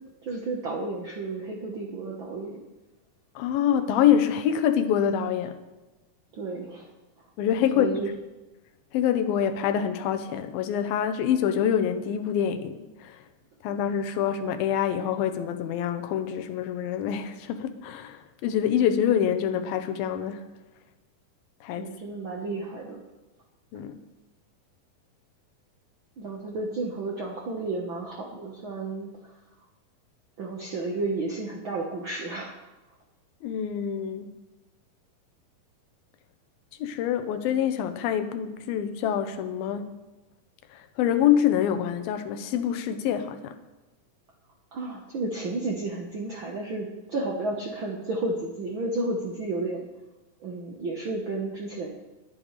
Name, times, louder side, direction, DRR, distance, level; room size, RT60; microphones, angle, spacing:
voice 1, 0.2-2.6 6.3-6.9 7.7-8.1 21.7-23.0 26.2-29.1 30.4-32.5 44.7-49.8 50.4-51.9, right 2 dB, 85° right, -1 dB, 1.1 m, -32 dB
voice 2, 3.4-5.6 7.4-7.9 8.9-13.2 13.6-20.5 21.6-21.9 23.7-24.0 33.4-34.3 36.8-39.9 41.0-43.6, left 9 dB, 80° left, 9 dB, 2.6 m, -26 dB
23.0 x 8.7 x 3.3 m, 1.1 s
omnidirectional pair, 4.3 m